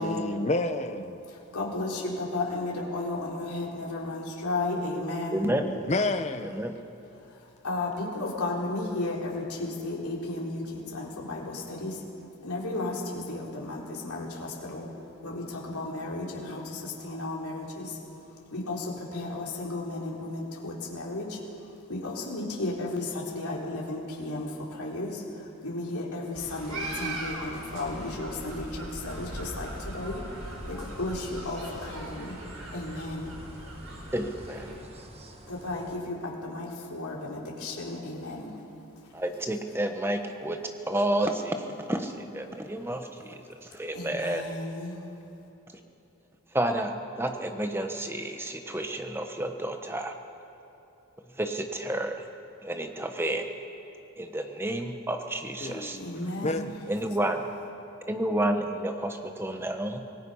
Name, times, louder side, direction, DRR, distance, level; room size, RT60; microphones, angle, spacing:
voice 1, 0.0-1.2 5.6-6.4 55.6-56.7, left 2 dB, 30° left, 0.8 m, -30 dB
voice 2, 1.3-5.5 7.2-12.0 12.4-14.9 15.2-18.0 18.2-32.4 32.7-33.3 35.0-35.1 35.5-38.6 43.9-45.0 56.0-56.7, left 2 dB, 90° left, 3.9 m, -34 dB
voice 3, 5.3-5.6 6.6-6.7 34.1-34.7 39.1-40.6 40.9-43.4 43.7-44.4 46.5-50.1 51.4-52.3 52.6-53.4 54.2-56.0 56.9-57.4 58.1-60.0, right 1 dB, 10° right, 1.1 m, -30 dB
sound 1, 26.3-34.7, right 1 dB, 80° right, 5.1 m, -40 dB
sound 2, 29.0-36.0, right 1 dB, 25° right, 1.5 m, -48 dB
26.0 x 19.0 x 5.6 m
head